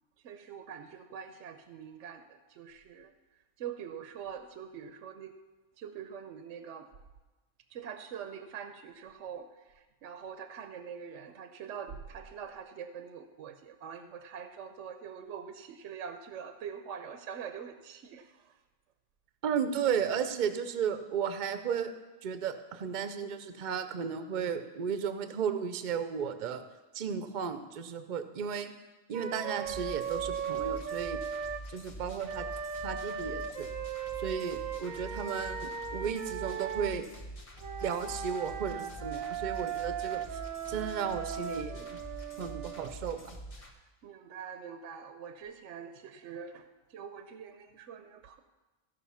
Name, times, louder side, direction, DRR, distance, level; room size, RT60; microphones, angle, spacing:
voice 1, 0.2-3.1 3.6-5.4 5.8-7.0 7.7-9.6 10.0-18.4 44.0-48.4, right 7 dB, 70° right, 8 dB, 0.9 m, -44 dB
voice 2, 19.4-21.9 22.2-26.6 26.9-28.7 29.1-31.2 31.7-32.5 32.8-33.7 34.2-37.1 37.8-40.2 40.7-42.0 42.4-43.3, right 7 dB, 45° right, 9 dB, 0.7 m, -34 dB
Wind instrument woodwind instrument, 29.1-31.6 32.2-37.0 37.6-42.9, right 7 dB, 90° right, 1.2 m, -37 dB
sound 1, 29.6-43.7, right 1 dB, 30° left, 1.2 m, -46 dB
15.5 x 5.4 x 5.6 m, 1.1 s
omnidirectional pair, 1.4 m